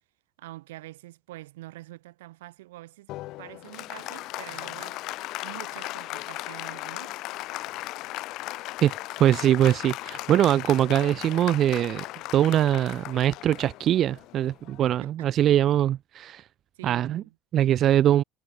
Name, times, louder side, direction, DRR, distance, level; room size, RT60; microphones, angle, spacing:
voice 1, 0.4-3.1 3.4-5.0 5.4-7.1 15.0-15.3 16.7-17.3, right 17 dB, 80° right, 1.4 m, -45 dB
Applause, 3.1-15.0, left 18 dB, 60° left, 1.6 m, -37 dB
voice 2, 8.8-12.0 12.3-16.5 16.8-17.2 17.5-18.2, right 11 dB, 50° right, 0.6 m, -22 dB
hypercardioid pair, 75°, 0 cm